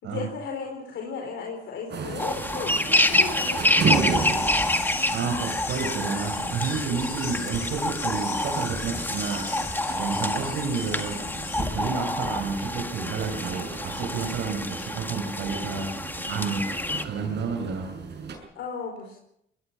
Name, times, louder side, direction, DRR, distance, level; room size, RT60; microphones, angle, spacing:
voice 1, 0.0-4.3 18.5-19.2, left 5 dB, 75° left, 1 dB, 4.9 m, -35 dB
sound 1, 1.9-18.4, right 5 dB, 60° right, 6.9 m, -35 dB
sound 2, 2.2-17.0, left 1 dB, 10° left, 1.8 m, -28 dB
sound 3, 3.9-11.6, left 6 dB, 55° left, 5.7 m, -38 dB
voice 2, 5.1-11.2 11.6-16.6 16.9-17.9, right 5 dB, 85° right, 1 dB, 4.8 m, -31 dB
25.5 x 19.5 x 6.0 m, 0.75 s
cardioid pair, 90°, 20 cm